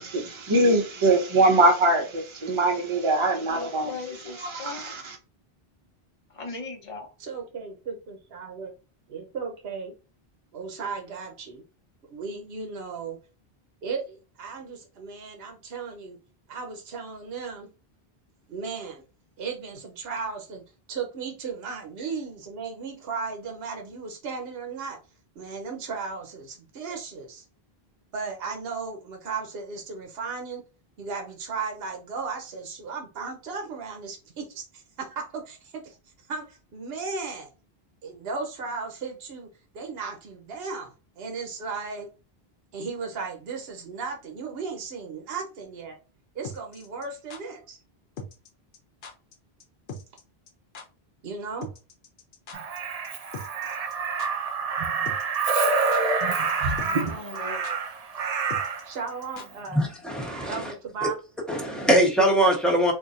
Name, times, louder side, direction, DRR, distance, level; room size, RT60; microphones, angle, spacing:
voice 1, 0.0-4.0 4.3-5.2, right 2 dB, 30° right, 0.8 m, -22 dB
voice 2, 3.5-5.0 6.3-7.1 56.6-57.6, left 4 dB, 35° left, 0.9 m, -39 dB
voice 3, 7.2-8.7 9.1-9.9 10.5-11.6 12.1-13.2 13.8-16.2 16.5-17.7 18.5-19.0 19.4-20.6 20.9-25.0 25.4-27.4 28.1-30.6 31.0-36.0 36.3-37.5 38.0-39.5 39.7-42.1 42.7-46.0 46.3-47.8 51.2-51.7 58.8-59.8 60.5-61.2, right 5 dB, 75° right, 1.0 m, -35 dB
sound 1, 46.4-47.4 48.2-48.5 48.7-48.8 49.0-49.3 49.6-49.7 49.9-50.2 50.5-50.6 50.7-50.8 51.6-52.8 53.0-53.1 53.3-53.9 54.2-54.3 55.1-55.4 55.6-56.2 56.5-56.6 56.8-57.1 57.3-57.4 57.6-57.7 58.5-59.7 59.9-60.0, left 3 dB, 75° left, 1.0 m, -40 dB
Crow, 52.5-58.9 60.3-60.5, right 4 dB, 50° right, 0.5 m, -27 dB
voice 4, 59.7-60.7 61.0-61.1 61.5-62.9, right 1 dB, ahead, 0.9 m, -22 dB
4.0 x 2.6 x 2.5 m
omnidirectional pair, 1.0 m